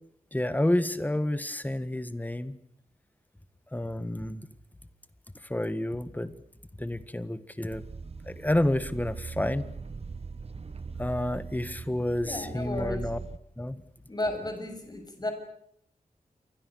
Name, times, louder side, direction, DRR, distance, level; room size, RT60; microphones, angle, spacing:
voice 1, 0.3-2.6 3.7-4.5 5.4-6.3 6.7-7.8 8.2-9.7 11.0-13.2 13.6-13.8, left 1 dB, 10° left, 13 dB, 1.7 m, -29 dB
sound 1, 7.7-13.4, right 4 dB, 45° right, 1.1 m, -40 dB
voice 2, 12.2-13.0 14.1-15.3, left 1 dB, 30° left, 6 dB, 6.8 m, -33 dB
28.5 x 24.0 x 6.4 m, 0.70 s
wide cardioid pair, 120°, 15 cm